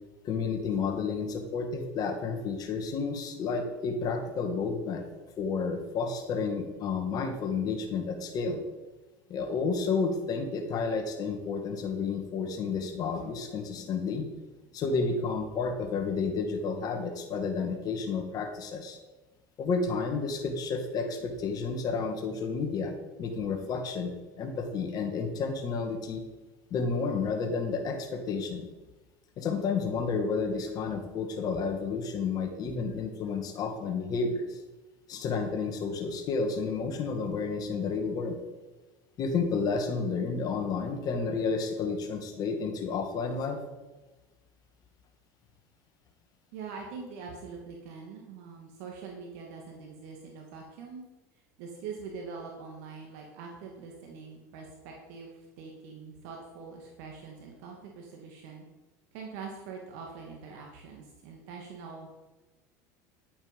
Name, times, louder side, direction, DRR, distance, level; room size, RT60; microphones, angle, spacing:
voice 1, 0.2-5.0 5.4-8.6 9.3-14.3 14.7-19.0 19.6-22.9 23.2-26.2 26.7-28.7 29.4-34.6 35.1-38.4 39.2-43.6, left 4 dB, 45° left, 4 dB, 2.0 m, -31 dB
voice 2, 46.5-51.0 51.6-58.7 59.1-62.1, right 5 dB, 70° right, 0 dB, 2.1 m, -43 dB
11.0 x 8.6 x 5.3 m, 1.2 s
supercardioid pair, 110°, 9 cm